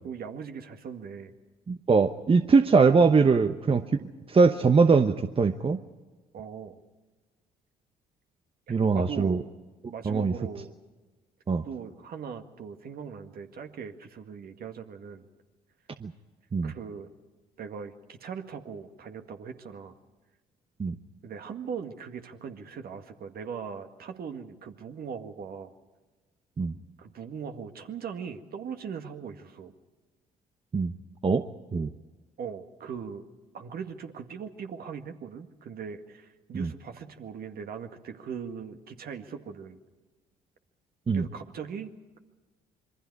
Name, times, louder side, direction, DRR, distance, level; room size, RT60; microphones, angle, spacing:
voice 1, 0.0-1.3 6.3-6.8 8.7-9.5 9.9-10.7 11.6-15.3 16.6-17.1 17.6-19.9 21.2-25.7 27.0-29.7 32.4-33.2 33.5-39.8 41.1-42.2, right 6 dB, 55° right, 6 dB, 2.0 m, -40 dB
voice 2, 1.7-3.8 4.3-5.8 8.7-9.4 10.1-10.3 11.5-11.6 16.0-16.1 16.5-16.7 20.8-20.9 26.6-26.7 30.7-30.9 31.2-31.4 31.7-31.9 36.5-36.7 41.1-41.2, right 4 dB, 30° right, 9 dB, 1.0 m, -22 dB
27.0 x 23.0 x 4.8 m, 1.2 s
hypercardioid pair, 50°, 19 cm